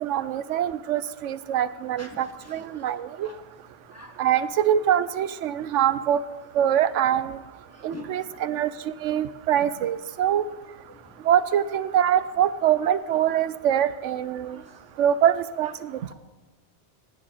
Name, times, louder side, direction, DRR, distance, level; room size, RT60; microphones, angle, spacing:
voice 1, 0.0-3.3 4.2-6.2 6.6-7.4 7.8-8.7 9.0-10.4 11.3-14.6 15.0-15.9, right 10 dB, 90° right, 15 dB, 1.0 m, -24 dB
voice 2, 2.0-2.2 2.5-2.6 3.2-3.4 3.9-4.1 7.9-8.1 11.0-11.1 14.5-14.6 16.1-16.2, left 2 dB, 15° left, 3 dB, 1.4 m, -42 dB
16.5 x 9.3 x 4.0 m, 1.2 s
omnidirectional pair, 1.2 m